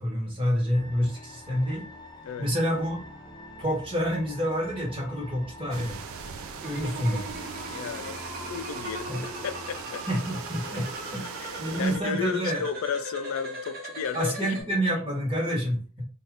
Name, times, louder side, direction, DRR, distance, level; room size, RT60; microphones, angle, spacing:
voice 1, 0.0-1.9 2.4-3.0 3.6-6.0 6.6-7.2 9.1-9.2 10.1-11.2 11.6-12.6 14.1-16.1, equal, 25° right, 1.1 m, -28 dB
sound 1, 0.7-12.1, left 1 dB, 20° left, 0.6 m, -45 dB
sound 2, 5.7-12.0, right 7 dB, 80° right, 0.4 m, -40 dB
sound 3, 6.6-14.6, right 1 dB, 45° right, 1.0 m, -39 dB
voice 2, 7.7-9.2 9.4-10.0 11.4-14.4, left 6 dB, 75° left, 0.4 m, -34 dB
2.7 x 2.4 x 3.3 m
head